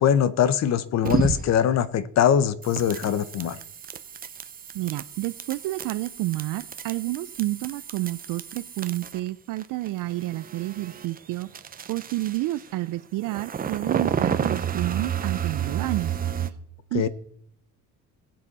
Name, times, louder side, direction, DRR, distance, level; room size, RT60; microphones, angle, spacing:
voice 1, 0.0-3.6 16.9-17.1, left 9 dB, 50° left, 0.8 m, -22 dB
sound 1, 1.0-1.7 2.6-9.3 9.6-12.7 13.2-16.5, right 8 dB, 25° right, 0.6 m, -31 dB
voice 2, 4.7-11.5 11.9-16.5 16.9-17.1, right 17 dB, 65° right, 0.5 m, -30 dB
20.0 x 7.7 x 4.1 m
cardioid pair, 135°, 35 cm